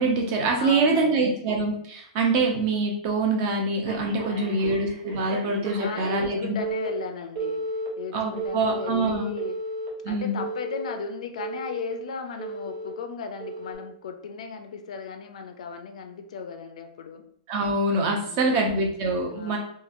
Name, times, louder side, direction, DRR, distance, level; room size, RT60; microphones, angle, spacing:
voice 1, 0.0-6.5 8.1-9.3 10.0-10.4 17.5-19.6, right 3 dB, 35° right, 1 dB, 0.6 m, -25 dB
voice 2, 0.6-1.4 4.2-4.7 5.8-7.7 8.0-9.6 10.1-17.2 18.3-18.8 19.3-19.6, left 5 dB, 80° left, 6 dB, 0.4 m, -36 dB
Telephone, 3.9-6.3 6.6-6.9 7.4-7.9 8.4-8.9 9.4-9.9 10.4-10.9 11.4-11.9 12.4-12.9 13.4-13.7, right 2 dB, 90° right, 1.0 m, -33 dB
2.9 x 2.3 x 2.5 m, 0.64 s
supercardioid pair, 165°, 4 cm